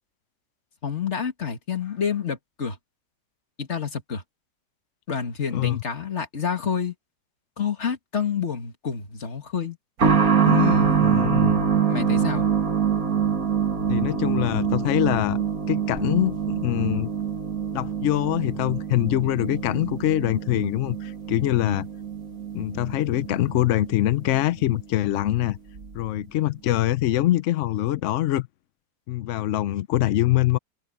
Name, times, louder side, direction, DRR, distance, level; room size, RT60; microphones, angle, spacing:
voice 1, 0.8-2.8 3.6-4.2 5.1-6.9 7.6-9.8 10.4-11.2 11.9-12.5, left 7 dB, 40° left, 2.2 m, -28 dB
voice 2, 5.5-5.8 11.0-11.6 13.9-15.4 15.7-17.1 17.7-21.9 22.5-25.6 25.9-28.5 29.1-30.6, left 14 dB, 80° left, 0.6 m, -24 dB
sound 1, 10.0-24.4 24.7-24.8 25.8-25.9, right 7 dB, 50° right, 2.4 m, -25 dB
omnidirectional pair, 1.9 m